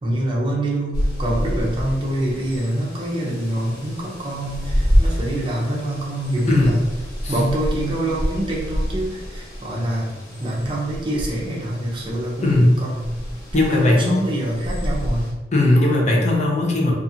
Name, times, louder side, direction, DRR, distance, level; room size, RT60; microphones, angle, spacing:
voice 1, 0.0-6.8 7.3-10.1 10.4-13.1 13.5-13.8 14.1-15.4, right 1 dB, 30° right, -4 dB, 0.6 m, -25 dB
sound 1, 0.9-15.3, equal, 60° left, 1.3 m, -27 dB
voice 2, 6.5-6.9 7.2-7.3 12.4-12.8 13.5-14.2 15.5-16.9, left 1 dB, 40° left, 0 dB, 0.5 m, -17 dB
2.4 x 2.4 x 2.7 m, 1.1 s
head